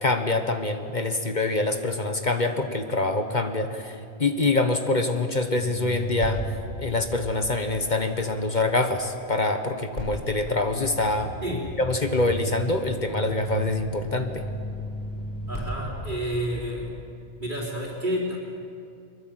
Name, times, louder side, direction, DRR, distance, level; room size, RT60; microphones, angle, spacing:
voice 1, 0.0-11.3 11.8-14.4, left 2 dB, 45° left, 6 dB, 1.3 m, -25 dB
sound 1, 5.6-8.7 9.9-16.9, right 2 dB, 85° left, 5.8 m, -35 dB
voice 2, 11.4-11.8 15.5-16.9 17.4-18.4, equal, 45° right, -4 dB, 3.8 m, -30 dB
23.5 x 22.0 x 7.7 m, 2.4 s
omnidirectional pair, 1.1 m